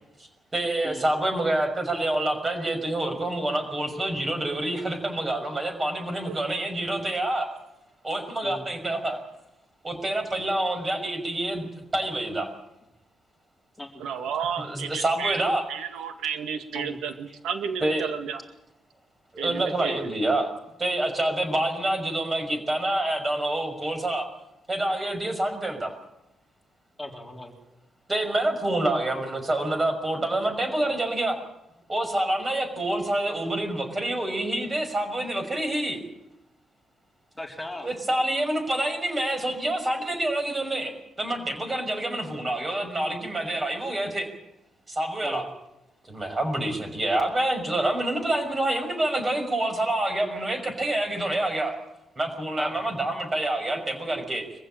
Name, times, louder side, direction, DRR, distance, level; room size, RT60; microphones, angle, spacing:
voice 1, 0.5-7.5 8.0-9.2 9.8-12.5 14.6-15.6 17.8-18.1 19.3-20.5 20.8-24.3 24.7-25.9 28.1-31.4 31.9-36.0 37.8-40.9 41.2-44.3 44.9-45.4 46.0-51.7 52.2-54.4, right 1 dB, 20° right, 6 dB, 5.9 m, -27 dB
voice 2, 14.0-15.4 15.7-18.4 19.4-20.0, right 7 dB, 90° right, 8 dB, 2.1 m, -32 dB
voice 3, 27.0-27.5 37.4-37.9 45.2-45.5 52.6-52.8, left 2 dB, 5° left, 1 dB, 3.8 m, -37 dB
24.0 x 15.5 x 8.8 m, 0.86 s
cardioid pair, 140°, 0 cm